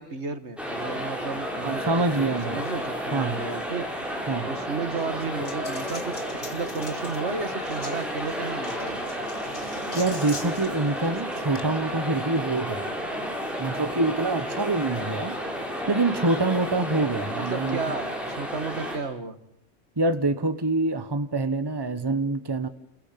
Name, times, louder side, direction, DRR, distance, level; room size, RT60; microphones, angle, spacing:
voice 1, 0.0-3.9 4.2-9.0 17.4-19.4, right 4 dB, 65° right, 10 dB, 2.0 m, -33 dB
sound 1, 0.6-19.0, equal, ahead, 6.1 m, -32 dB
voice 2, 1.6-2.6 3.1-3.5 4.3-4.5 9.9-12.9 13.6-15.4 15.9-17.8 20.0-22.7, right 2 dB, 20° right, 10 dB, 1.2 m, -26 dB
Coin (dropping), 4.9-11.6, left 2 dB, 45° left, 2.5 m, -43 dB
29.5 x 22.0 x 8.7 m, 0.73 s
omnidirectional pair, 1.2 m